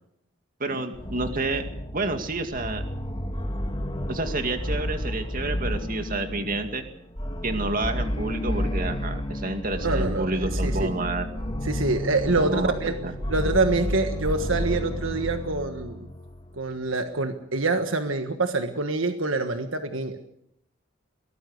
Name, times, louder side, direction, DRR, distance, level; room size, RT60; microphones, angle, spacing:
voice 1, 0.6-1.7 1.9-2.8 4.1-6.8 7.4-11.3 12.4-13.1, right 2 dB, 40° right, 7 dB, 2.2 m, -29 dB
sound 1, 0.9-16.6, equal, 25° left, 2.0 m, -31 dB
voice 2, 9.8-10.9 11.6-13.0 13.3-16.1 16.6-20.2, right 3 dB, 70° right, 7 dB, 1.5 m, -26 dB
23.0 x 18.5 x 6.6 m, 0.74 s
head